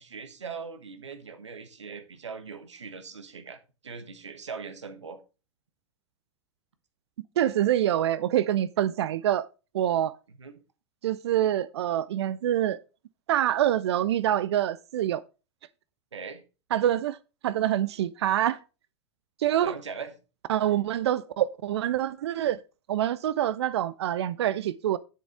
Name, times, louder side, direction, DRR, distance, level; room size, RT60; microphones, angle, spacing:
voice 1, 0.0-5.2 10.4-10.6 16.1-16.4 19.6-20.1, right 5 dB, 80° right, 1.3 m, -40 dB
voice 2, 7.4-9.5 9.7-10.1 11.0-12.8 13.3-15.2 16.7-17.2 17.4-18.6 19.4-19.7 20.5-22.6 22.9-25.0, right 11 dB, 65° right, 0.4 m, -26 dB
7.2 x 7.1 x 3.4 m
figure-of-eight pair, 95°, 15 cm